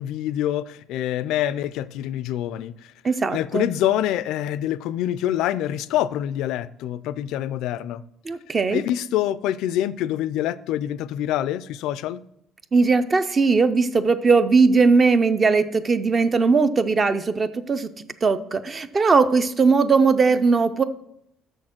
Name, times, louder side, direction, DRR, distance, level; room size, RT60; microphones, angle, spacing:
voice 1, 0.0-2.9 3.3-8.0 8.7-12.2, left 12 dB, 75° left, 0.4 m, -26 dB
voice 2, 3.0-3.7 8.3-8.8 12.7-17.9 18.2-20.8, right 4 dB, 20° right, 0.4 m, -19 dB
6.8 x 6.4 x 5.9 m
cardioid pair, 170°, 0 cm